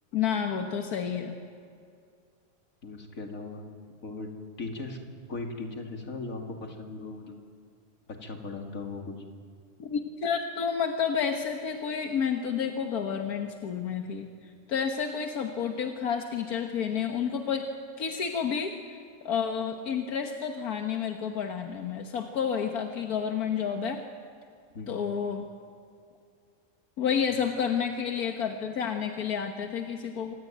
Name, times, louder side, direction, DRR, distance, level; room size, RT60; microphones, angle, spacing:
voice 1, 0.1-1.4 9.8-14.3 14.7-17.7 18.0-18.8 19.2-24.0 24.9-25.5 27.0-30.3, left 7 dB, 90° left, 4 dB, 1.8 m, -30 dB
voice 2, 2.8-3.6 4.0-4.3 4.6-5.0 5.3-7.4 8.1-9.2 24.7-25.0, left 3 dB, 65° left, 2 dB, 3.0 m, -38 dB
26.0 x 17.5 x 9.2 m, 2.3 s
omnidirectional pair, 1.5 m